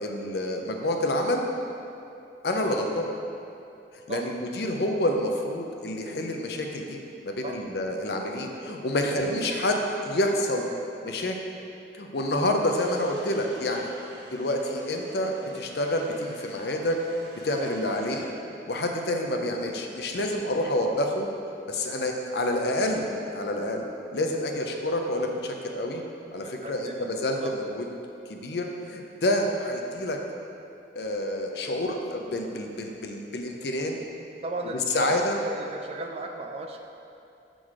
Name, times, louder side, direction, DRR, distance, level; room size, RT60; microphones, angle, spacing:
voice 1, 0.0-1.4 2.4-3.1 4.1-9.8 10.0-10.6 11.0-11.4 11.9-13.9 14.3-17.0 17.4-18.2 18.7-21.3 21.7-23.9 24.1-26.0 26.3-27.8 28.3-30.2 30.9-34.0 34.9-35.4, left 1 dB, 65° left, 3 dB, 0.6 m, -28 dB
voice 2, 9.1-9.6 11.0-11.2 17.5-17.9 26.4-27.5 34.4-36.8, right 2 dB, 35° right, 3 dB, 0.3 m, -36 dB
sound 1, 12.6-18.3, right 1 dB, 85° right, 1.1 m, -48 dB
6.3 x 3.9 x 4.8 m, 2.7 s
head